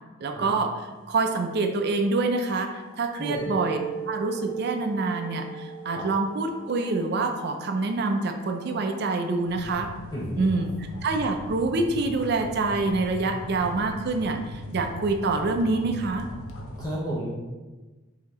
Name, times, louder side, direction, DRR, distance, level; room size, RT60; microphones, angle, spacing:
voice 1, 0.2-0.7 1.1-3.8 4.1-9.9 10.4-10.7 11.0-16.2, right 3 dB, 50° right, 4 dB, 0.4 m, -26 dB
sound 1, 2.5-16.8, left 1 dB, 85° left, 0.7 m, -41 dB
Mallet percussion, 3.3-7.5, right 7 dB, 20° right, 1.3 m, -37 dB
voice 2, 10.1-10.5 16.8-17.4, equal, 20° left, -5 dB, 0.6 m, -32 dB
5.5 x 2.8 x 3.0 m, 1.2 s
head